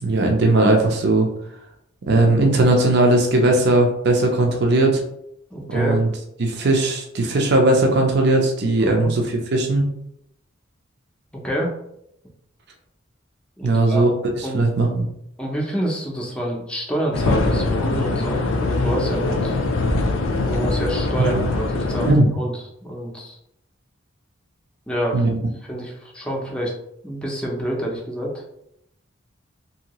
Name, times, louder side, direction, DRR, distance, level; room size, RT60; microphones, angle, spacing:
voice 1, 0.0-1.3 2.1-5.0 5.7-6.1 6.4-9.9 13.6-14.1 14.4-15.1 21.2-21.5 22.1-22.3 25.1-25.3, right 2 dB, 60° right, 2 dB, 0.5 m, -18 dB
voice 2, 5.5-6.0 8.8-9.1 11.4-11.7 13.6-14.1 14.4-14.6 15.4-19.6 20.4-22.5 22.8-23.4 24.9-25.3 25.7-26.7 27.0-28.4, right 1 dB, 5° left, -2 dB, 0.6 m, -27 dB
sound 1, 17.1-22.1, left 2 dB, 80° left, 0.4 m, -22 dB
2.7 x 2.7 x 2.9 m, 0.76 s
head